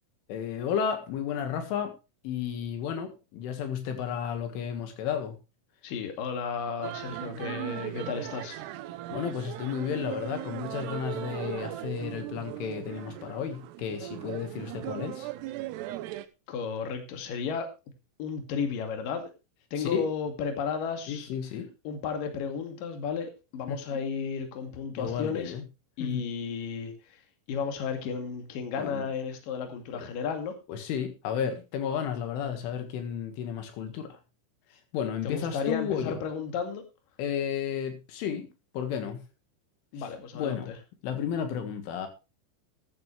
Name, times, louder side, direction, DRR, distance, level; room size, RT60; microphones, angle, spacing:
voice 1, 0.3-1.9 2.2-5.4 9.1-15.3 19.8-20.1 21.1-21.7 23.7-23.8 25.0-25.6 26.0-26.2 28.8-29.1 29.9-30.1 30.7-34.2 34.7-36.2 37.2-38.5 38.7-39.2 40.4-40.7 41.0-42.1, left 8 dB, 80° left, 6 dB, 4.2 m, -32 dB
voice 2, 5.8-8.6 16.5-17.7 18.2-19.3 19.7-21.3 21.8-25.5 26.0-27.2 27.5-30.5 35.2-36.8 39.9-40.8, left 6 dB, 50° left, 5 dB, 3.4 m, -33 dB
sound 1, 6.8-16.3, right 15 dB, 80° right, 2.5 m, -38 dB
14.5 x 12.0 x 3.3 m, 0.28 s
omnidirectional pair, 5.6 m